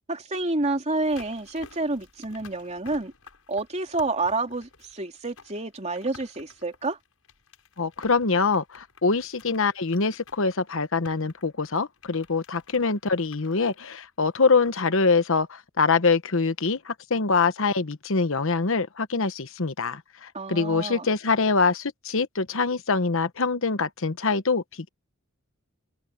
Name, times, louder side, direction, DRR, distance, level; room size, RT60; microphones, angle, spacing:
voice 1, 0.1-3.1 3.5-7.0 20.3-21.1, right 2 dB, 35° right, 3.4 m, -29 dB
sound 1, 0.9-14.9 15.2-15.3, left 4 dB, 85° left, 6.4 m, -52 dB
voice 2, 7.8-24.6, left 4 dB, 65° left, 1.1 m, -24 dB
head